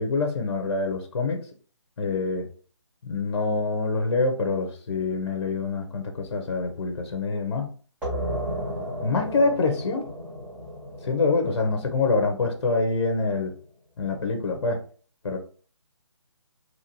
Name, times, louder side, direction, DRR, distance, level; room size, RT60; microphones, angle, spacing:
voice 1, 0.0-1.4 2.0-2.5 3.0-7.7 8.8-10.0 11.0-13.5 14.0-14.8 15.2-15.4, left 3 dB, 55° left, 4 dB, 0.7 m, -25 dB
sound 1, 8.0-13.4, equal, 10° right, 0.9 m, -34 dB
2.9 x 2.5 x 2.8 m, 0.42 s
figure-of-eight pair, 155°, 16 cm